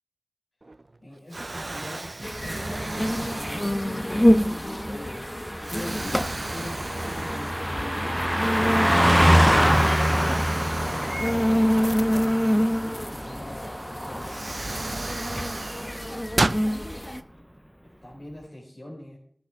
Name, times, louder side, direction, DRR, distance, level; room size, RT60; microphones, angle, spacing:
Explosion, 0.6-1.0 1.3-4.1 4.7-4.9 5.6-7.9 8.2-8.3 9.6-12.2 13.6-13.7 14.2-16.7, right 2 dB, 55° right, 0.4 m, -33 dB
voice 1, 1.0-2.1 2.4-12.7 13.1-14.4 17.4-17.5 17.8-19.2, left 1 dB, 50° left, -4 dB, 4.6 m, -43 dB
sound 1, 2.2-17.2, equal, 15° left, 1.0 m, -27 dB
Car passing by, 3.1-15.1 15.4-15.6, equal, 5° right, 0.5 m, -25 dB
17.5 x 8.3 x 3.6 m, 0.65 s
wide cardioid pair, 45°, 0 cm